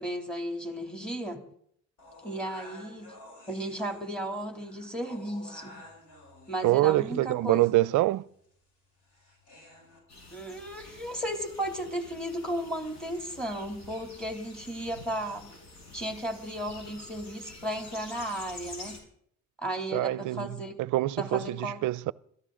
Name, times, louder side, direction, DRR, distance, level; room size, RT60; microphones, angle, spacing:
voice 1, 0.0-1.4 2.2-3.1 3.5-5.8 6.5-7.7 10.3-15.5 15.9-19.0 19.6-20.7 21.2-21.8, right 1 dB, 5° left, 2.8 m, -34 dB
sound 1, 2.0-10.0, left 1 dB, 85° left, 7.2 m, -52 dB
voice 2, 6.6-8.2 19.9-22.1, right 17 dB, 80° right, 0.5 m, -26 dB
sound 2, 10.1-19.0, left 2 dB, 65° left, 5.8 m, -48 dB
21.5 x 14.5 x 3.8 m
cardioid pair, 90°, 30 cm